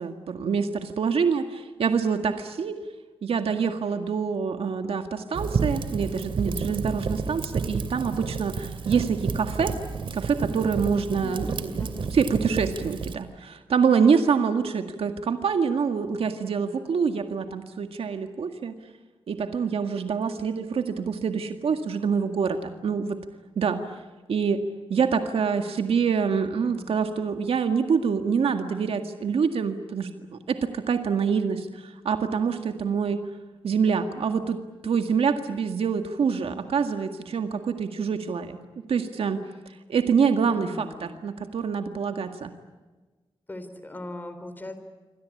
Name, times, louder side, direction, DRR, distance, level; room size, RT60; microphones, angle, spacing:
voice 1, 0.0-2.8 3.2-9.7 10.1-11.9 12.1-18.7 19.3-23.2 23.6-23.8 24.3-24.6 24.9-33.2 33.6-38.6 38.9-39.4 39.9-42.5, right 6 dB, 85° right, 6 dB, 1.9 m, -26 dB
Fire, 5.3-13.1, right 5 dB, 65° right, 2.5 m, -31 dB
voice 2, 11.1-12.2 26.4-26.9 40.3-41.1 43.5-44.8, left 1 dB, 20° left, 9 dB, 3.7 m, -40 dB
28.0 x 24.0 x 8.5 m, 1.3 s
wide cardioid pair, 180°, 10 cm